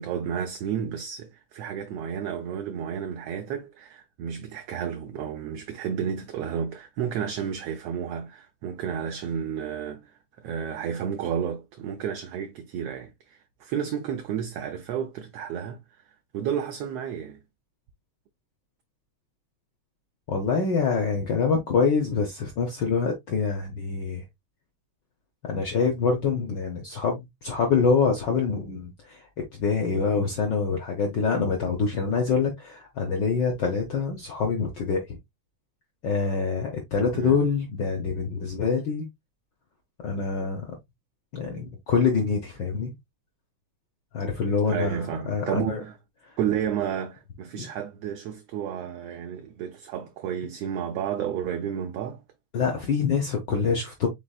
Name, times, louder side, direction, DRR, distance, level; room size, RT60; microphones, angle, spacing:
voice 1, 0.0-15.8 16.3-17.4 26.9-27.0 37.1-37.4 44.6-46.0 46.4-52.2, right 8 dB, 75° right, 1.5 m, -31 dB
voice 2, 20.3-24.2 25.5-29.2 29.5-35.2 36.0-39.1 40.0-40.7 41.3-42.9 44.1-45.8 47.5-47.7 52.5-54.1, left 5 dB, 75° left, 1.0 m, -25 dB
5.1 x 4.2 x 2.3 m
omnidirectional pair, 3.3 m